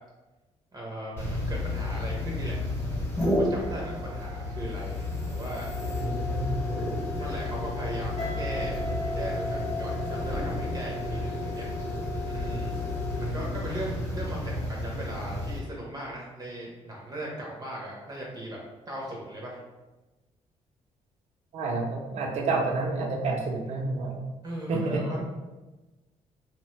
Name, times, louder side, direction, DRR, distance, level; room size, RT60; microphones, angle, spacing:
voice 1, 0.7-2.6 3.3-5.0 5.3-5.7 7.2-8.8 9.1-11.7 12.3-12.8 13.2-18.6 18.9-19.6 24.4-25.3, right 1 dB, 35° right, -3 dB, 0.6 m, -38 dB
sound 1, 1.2-15.6, left 1 dB, 20° left, 1.0 m, -31 dB
voice 2, 6.0-6.5 21.5-24.2 24.7-25.2, right 3 dB, 70° right, 1 dB, 0.6 m, -29 dB
Guitar, 8.2-11.0, equal, 80° left, 0.7 m, -37 dB
2.9 x 2.1 x 3.0 m, 1.1 s
cardioid pair, 95°, 12 cm